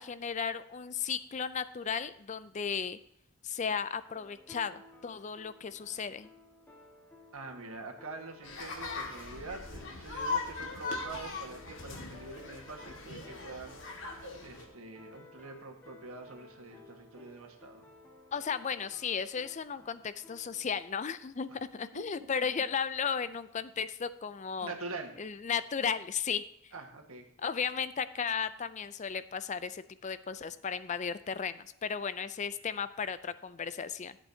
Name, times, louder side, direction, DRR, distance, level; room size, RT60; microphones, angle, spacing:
voice 1, 0.0-3.0 3.4-6.3 18.3-24.7 25.2-26.7 27.4-34.2, left 6 dB, 35° left, 14 dB, 0.4 m, -35 dB
sound 1, 4.1-20.7, left 2 dB, 10° left, 1.6 m, -56 dB
voice 2, 7.3-17.8 21.9-22.1 24.6-25.1 26.7-27.2, right 3 dB, 90° right, 3 dB, 1.7 m, -45 dB
sound 2, 8.4-14.7, left 3 dB, 60° left, 2.0 m, -39 dB
14.5 x 8.2 x 2.8 m, 0.77 s
head